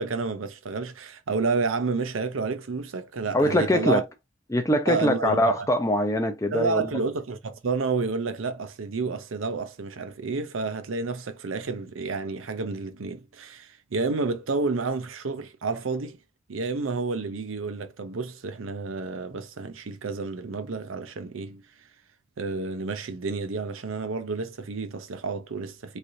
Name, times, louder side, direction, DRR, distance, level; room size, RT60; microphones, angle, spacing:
voice 1, 0.0-4.0 4.9-5.7 6.5-16.2 16.5-21.6 22.4-26.0, right 4 dB, 80° right, 0.6 m, -30 dB
voice 2, 3.3-4.0 4.5-6.9, left 1 dB, 15° left, 0.4 m, -23 dB
3.2 x 2.7 x 2.5 m
head